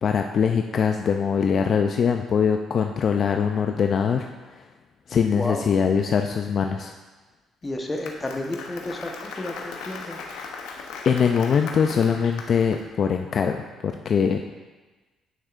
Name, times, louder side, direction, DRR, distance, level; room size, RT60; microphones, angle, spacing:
voice 1, 0.0-4.6 5.1-6.9 11.1-14.4, left 6 dB, 55° left, 4 dB, 0.3 m, -22 dB
voice 2, 5.4-5.7 7.6-10.2, left 1 dB, 20° left, 2 dB, 1.0 m, -31 dB
Applause, 7.7-12.8, left 4 dB, 90° left, 0.8 m, -38 dB
8.9 x 6.3 x 2.5 m, 1.2 s
cardioid pair, 90°, 0 cm